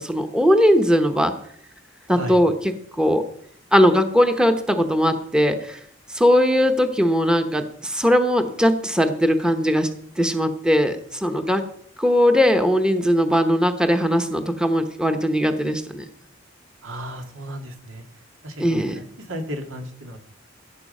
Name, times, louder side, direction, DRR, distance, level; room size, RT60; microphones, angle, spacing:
voice 1, 0.0-1.3 2.1-2.5 3.0-3.2 3.7-5.8 6.1-9.9 10.2-11.6 12.0-16.0 18.6-18.9, equal, 5° right, 7 dB, 0.9 m, -19 dB
voice 2, 16.8-18.0 18.4-20.2, equal, 85° right, 5 dB, 2.1 m, -34 dB
16.0 x 8.3 x 5.4 m, 0.65 s
head